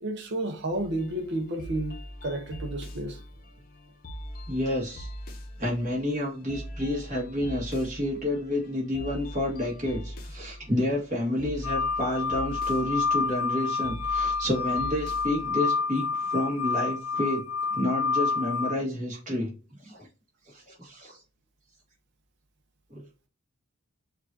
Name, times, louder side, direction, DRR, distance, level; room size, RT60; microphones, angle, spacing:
voice 1, 0.0-3.2, right 1 dB, 50° right, 0.7 m, -31 dB
sound 1, 0.7-15.5, equal, 40° left, 0.7 m, -42 dB
voice 2, 4.5-5.1 5.6-17.4 17.7-19.5 19.8-20.1 20.5-21.2 22.9-23.0, left 1 dB, 35° right, 1.6 m, -29 dB
sound 2, 11.6-18.7, left 4 dB, 75° left, 0.8 m, -28 dB
6.4 x 2.5 x 2.6 m
head